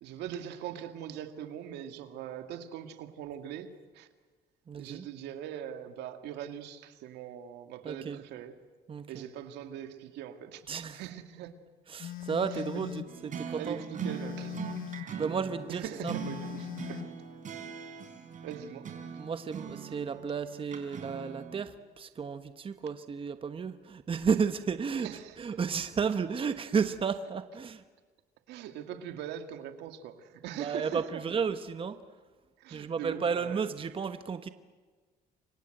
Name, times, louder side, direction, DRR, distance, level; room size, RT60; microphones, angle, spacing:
voice 1, 0.0-4.1 4.8-8.6 9.1-10.6 10.9-11.5 12.2-12.9 13.4-14.7 15.7-17.2 18.4-19.0 25.0-25.4 28.5-31.1 32.6-33.6, right 10 dB, 85° right, 2.3 m, -42 dB
voice 2, 4.7-5.1 7.8-8.2 8.9-9.2 10.7-11.0 11.9-13.8 15.2-16.1 19.1-25.1 25.4-27.8 30.5-32.0 32.7-34.5, right 6 dB, 30° right, 1.2 m, -33 dB
Telephone, 12.0-13.1 14.0-15.2 16.0-17.2, left 12 dB, 55° left, 1.1 m, -40 dB
sound 1, 13.1-21.6, right 7 dB, 50° right, 4.7 m, -41 dB
29.5 x 24.5 x 7.9 m
cardioid pair, 110°, 17 cm